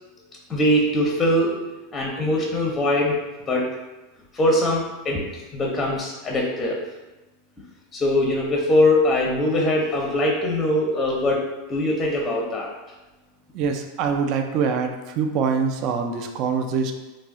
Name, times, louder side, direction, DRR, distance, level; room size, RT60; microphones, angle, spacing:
voice 1, 0.5-1.5 1.9-3.2 3.5-3.7 4.3-5.2 5.5-6.8 7.9-12.7, left 1 dB, 20° left, -2 dB, 0.5 m, -22 dB
voice 2, 13.5-16.9, right 6 dB, 50° right, 5 dB, 0.3 m, -24 dB
2.3 x 2.0 x 3.5 m, 1.1 s
supercardioid pair, 125°, 0 cm